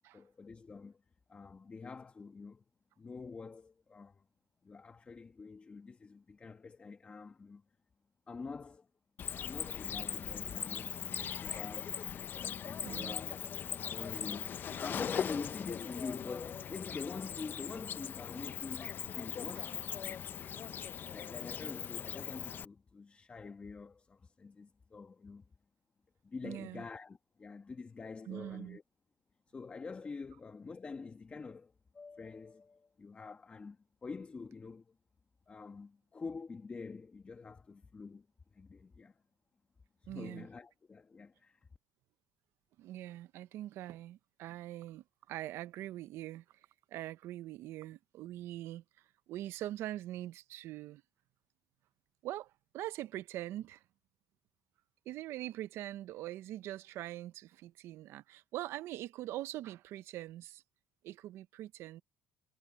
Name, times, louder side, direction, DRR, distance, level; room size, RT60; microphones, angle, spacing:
voice 1, 0.1-1.0 1.3-2.6 3.0-4.2 4.6-7.6 8.3-8.9 9.4-11.9 12.3-13.3 13.6-20.2 21.1-25.5 26.2-28.8 29.5-35.0 35.5-38.3 38.5-39.2 40.0-41.7, left 4 dB, 30° left, 1.3 m, -46 dB
Cricket, 9.2-22.6, left 8 dB, 50° left, 0.8 m, -40 dB
voice 2, 12.8-13.2 19.6-19.7 26.4-26.8 28.3-28.8 40.1-40.5 42.8-46.4 46.9-48.8 49.3-51.0 52.2-53.8 55.1-60.6 61.0-62.0, right 14 dB, 75° right, 0.7 m, -43 dB
cardioid pair, 90°, 4 cm